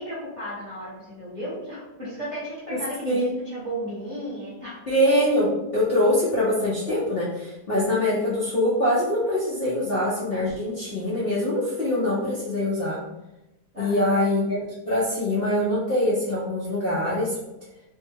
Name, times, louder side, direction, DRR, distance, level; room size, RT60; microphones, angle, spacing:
voice 1, 0.0-4.8 13.7-14.3, equal, 30° right, -8 dB, 1.1 m, -34 dB
voice 2, 4.9-13.0 13.8-17.4, left 1 dB, 55° left, -7 dB, 0.6 m, -23 dB
3.3 x 2.1 x 3.3 m, 0.96 s
omnidirectional pair, 1.9 m